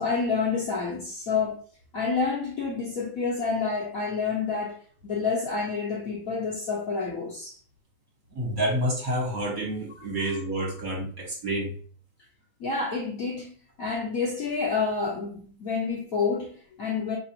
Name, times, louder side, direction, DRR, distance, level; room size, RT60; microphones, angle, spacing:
voice 1, 0.0-1.6 1.9-7.6 10.2-10.3 12.6-17.2, left 4 dB, 55° left, 1.0 m, -29 dB
voice 2, 8.3-11.7, right 1 dB, 50° right, 1.7 m, -29 dB
4.8 x 3.4 x 2.8 m
omnidirectional pair, 2.2 m